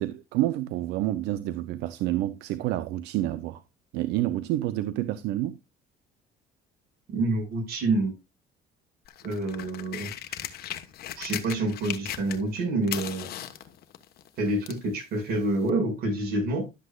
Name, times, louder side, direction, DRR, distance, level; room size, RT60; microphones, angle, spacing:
voice 1, 0.0-3.6 3.9-5.6, right 14 dB, 90° right, 0.6 m, -28 dB
voice 2, 7.1-8.1 9.2-10.5 11.2-13.3 14.4-16.6, right 2 dB, 65° right, 5.7 m, -27 dB
sound 1, 9.0-12.6 12.8-14.9 15.7-15.8, left 12 dB, 65° left, 1.2 m, -37 dB
12.0 x 8.0 x 2.3 m
cardioid pair, 110°, 17 cm